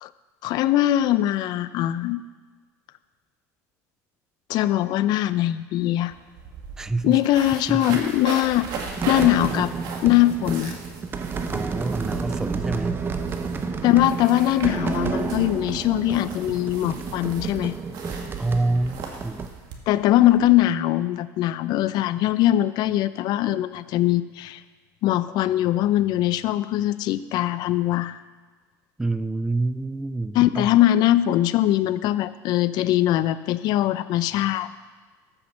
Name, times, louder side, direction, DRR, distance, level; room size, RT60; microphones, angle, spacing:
voice 1, 0.4-2.2 4.5-6.1 7.0-8.7 9.1-9.7 10.0-10.7 13.8-17.7 19.9-24.6 25.0-28.2 30.3-34.7, left 14 dB, 55° left, 14 dB, 0.5 m, -21 dB
sound 1, 5.8-5.9 6.1-20.5, right 5 dB, 55° right, 2.0 m, -38 dB
voice 2, 6.8-7.2 7.7-8.0 11.5-13.0 18.4-19.5 29.0-30.7, right 2 dB, 5° right, 14 dB, 0.3 m, -27 dB
sound 2, 8.6-19.5, right 4 dB, 25° right, 0.9 m, -30 dB
14.0 x 6.2 x 5.9 m, 1.4 s
supercardioid pair, 115°, 8 cm